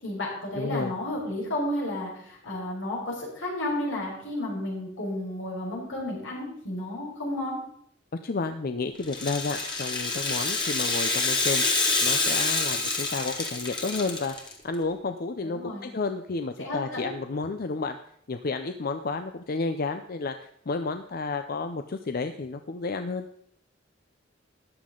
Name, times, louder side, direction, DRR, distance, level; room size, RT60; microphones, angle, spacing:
voice 1, 0.0-7.6 15.4-15.9 16.6-17.1, left 1 dB, 85° left, -3 dB, 5.3 m, -32 dB
voice 2, 0.6-0.9 8.1-18.0 18.3-23.3, left 3 dB, 50° left, 8 dB, 0.6 m, -31 dB
Rattle (instrument), 9.0-14.5, left 3 dB, 25° left, 2.1 m, -27 dB
13.5 x 10.5 x 3.8 m, 0.66 s
head